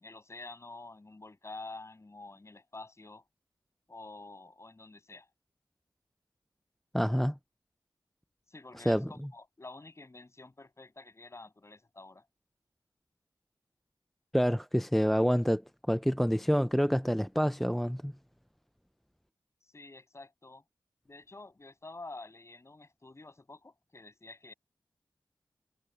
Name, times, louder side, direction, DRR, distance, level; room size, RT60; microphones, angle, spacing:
voice 1, 0.0-3.2 3.9-5.3 8.5-12.3 19.6-20.6 21.1-24.5, left 2 dB, 35° left, 7.1 m, -48 dB
voice 2, 6.9-7.4 8.9-9.0 14.3-15.6 15.9-18.1, equal, ahead, 0.4 m, -27 dB
wide cardioid pair, 85°, 8 cm